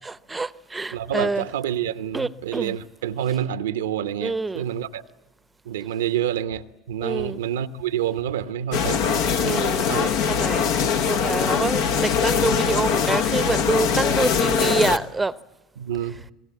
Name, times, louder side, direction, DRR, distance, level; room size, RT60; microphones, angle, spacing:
voice 1, 0.3-1.4 2.1-2.7 4.2-4.6 7.0-7.4 9.4-10.7 11.0-15.3, right 3 dB, 15° right, 0.7 m, -26 dB
voice 2, 0.9-5.0 5.6-10.1 11.5-11.7 15.8-16.2, right 10 dB, 85° right, 0.9 m, -28 dB
sound 1, 8.7-15.0, left 7 dB, 70° left, 1.1 m, -22 dB
26.0 x 21.0 x 8.3 m
hypercardioid pair, 75°, 0 cm